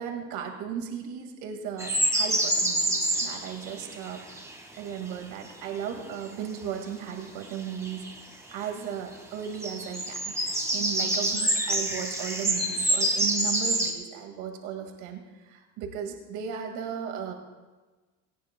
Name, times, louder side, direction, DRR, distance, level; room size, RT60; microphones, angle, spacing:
voice 1, 0.0-4.2 4.8-8.2 8.5-17.3, right 8 dB, 60° right, 3 dB, 2.0 m, -36 dB
sound 1, 1.8-4.5 7.4-8.1 9.4-13.9, right 1 dB, 10° right, 1.4 m, -27 dB
18.5 x 17.5 x 2.2 m, 1.2 s
cardioid pair, 155°, 33 cm